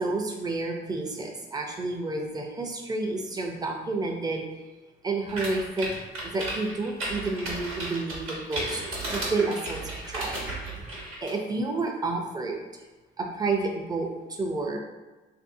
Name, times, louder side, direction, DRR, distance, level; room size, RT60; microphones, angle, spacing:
voice 1, 0.0-4.4 5.0-5.9 6.2-10.4 11.2-12.6 13.2-14.1 14.4-14.8, right 3 dB, 20° right, 2 dB, 0.5 m, -30 dB
sound 1, 5.3-11.3, right 1 dB, 90° right, 1.1 m, -34 dB
3.3 x 2.6 x 2.6 m, 1.2 s
cardioid pair, 90°, 20 cm